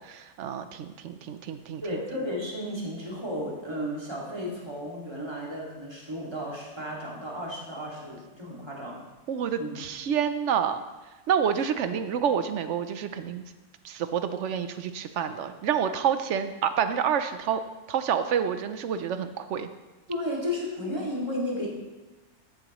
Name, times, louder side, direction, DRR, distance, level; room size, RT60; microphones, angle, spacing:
voice 1, 0.0-2.0 9.3-10.8 11.3-13.5 13.8-17.6 17.9-19.7, right 8 dB, 65° right, 10 dB, 0.8 m, -28 dB
voice 2, 1.8-9.0 9.6-9.8 11.9-12.0 20.1-21.8, left 1 dB, 15° right, -4 dB, 2.2 m, -33 dB
13.5 x 7.7 x 3.1 m, 1.2 s
omnidirectional pair, 1.5 m